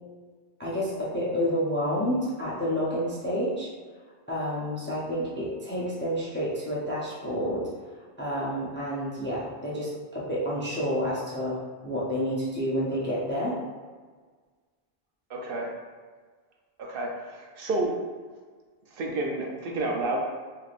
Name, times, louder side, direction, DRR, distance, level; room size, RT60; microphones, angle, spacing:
voice 1, 0.6-3.7 4.3-7.7 8.2-13.6, equal, 15° left, -7 dB, 0.4 m, -29 dB
voice 2, 15.3-15.7 16.8-17.9 18.9-20.2, right 2 dB, 65° right, -1 dB, 0.7 m, -30 dB
3.3 x 2.6 x 2.4 m, 1.5 s
omnidirectional pair, 1.0 m